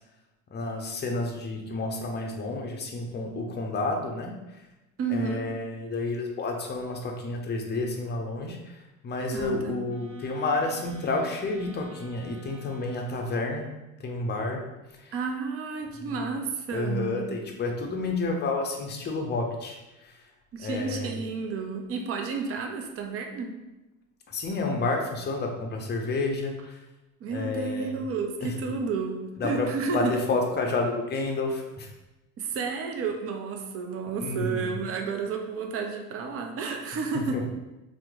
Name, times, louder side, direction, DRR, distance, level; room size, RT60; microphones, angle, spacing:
voice 1, 0.5-4.6 5.1-13.7 14.0-14.6 14.9-15.1 16.0-16.4 16.7-20.3 20.6-21.2 24.3-26.8 27.3-28.0 28.4-28.5 29.4-31.9 34.1-34.8 37.1-37.4, left 3 dB, 25° left, 2 dB, 0.6 m, -30 dB
voice 2, 5.0-5.4 9.3-9.8 15.1-17.3 20.5-23.5 27.2-30.0 32.4-37.4, right 5 dB, 35° right, 3 dB, 0.5 m, -31 dB
sound 1, 9.9-13.8, left 2 dB, 60° right, 1.2 m, -48 dB
2.9 x 2.1 x 3.7 m, 1.0 s
hypercardioid pair, 65°, 42 cm